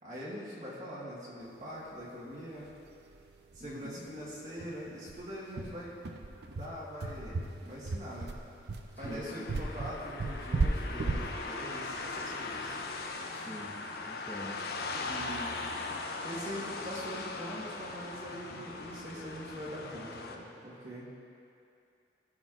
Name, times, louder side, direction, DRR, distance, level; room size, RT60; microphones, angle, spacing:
voice 1, 0.0-2.7 3.5-5.9 6.4-8.3 9.0-12.8 15.1-15.6 16.2-21.1, equal, 45° right, -7 dB, 1.3 m, -43 dB
sound 1, 2.7-2.8 3.1-3.2 3.5-3.7 4.0-4.1 4.6-13.0, right 3 dB, 65° right, 0.5 m, -35 dB
voice 2, 3.6-4.0 9.0-9.5 13.3-13.7 14.1-14.6, equal, 10° left, -6 dB, 1.1 m, -44 dB
sound 2, 9.0-20.4, left 3 dB, 55° left, 0.5 m, -40 dB
13.5 x 6.1 x 2.5 m, 2.6 s
head